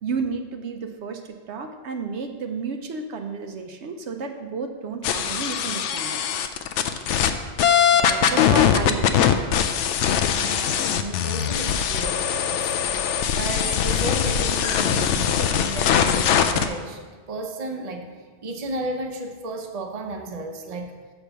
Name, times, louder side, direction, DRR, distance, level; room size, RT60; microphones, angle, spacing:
voice 1, 0.0-6.2 8.2-9.3, right 5 dB, 75° right, 5 dB, 1.0 m, -32 dB
sound 1, 5.0-7.3 7.6-16.7, left 8 dB, 85° left, 0.9 m, -21 dB
voice 2, 7.8-8.4 10.3-12.7 13.4-18.1 18.4-20.9, right 2 dB, 35° right, 3 dB, 0.8 m, -33 dB
6.9 x 4.6 x 6.8 m, 1.4 s
omnidirectional pair, 1.2 m